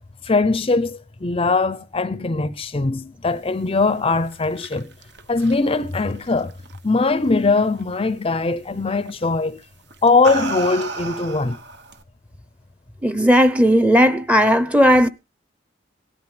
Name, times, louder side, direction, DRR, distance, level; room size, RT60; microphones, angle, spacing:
voice 1, 0.2-4.9 5.3-6.5 6.8-9.6 10.0-11.6, left 3 dB, 30° left, 0.6 m, -21 dB
sound 1, 4.1-7.0 7.4-7.8 9.1-9.3 9.9-12.0, right 3 dB, 65° right, 1.1 m, -32 dB
voice 2, 13.0-15.1, equal, 5° right, 0.8 m, -15 dB
18.0 x 13.0 x 3.3 m
head